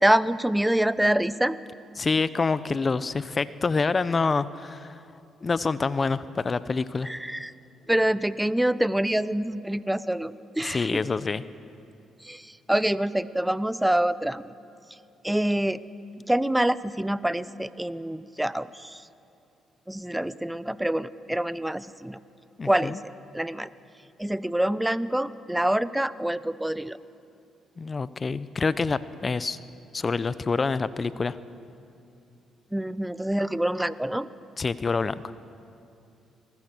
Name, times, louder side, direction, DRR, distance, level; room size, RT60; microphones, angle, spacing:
voice 1, 0.0-1.6 7.0-7.5 7.9-11.0 12.2-14.5 14.9-15.0 15.2-15.8 16.3-19.1 19.9-22.2 22.6-23.7 24.2-27.0 32.7-34.3, right 1 dB, 5° right, 15 dB, 0.9 m, -26 dB
voice 2, 2.0-5.0 5.4-7.1 10.6-11.4 22.6-23.0 27.8-29.6 29.9-31.4 34.6-35.3, left 4 dB, 35° left, 15 dB, 0.9 m, -27 dB
30.0 x 20.5 x 6.4 m, 2.6 s
supercardioid pair, 55°, 0 cm